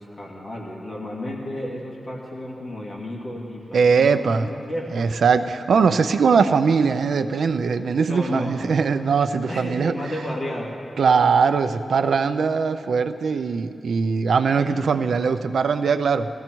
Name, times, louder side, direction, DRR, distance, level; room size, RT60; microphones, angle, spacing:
voice 1, 0.0-5.1 8.1-8.6 9.5-10.7 14.4-15.1, left 1 dB, 35° left, -4 dB, 2.4 m, -32 dB
voice 2, 3.7-4.5 4.9-9.9 11.0-16.3, right 5 dB, 75° right, 10 dB, 0.5 m, -20 dB
20.0 x 14.5 x 4.6 m, 2.8 s
wide cardioid pair, 155°, 0 cm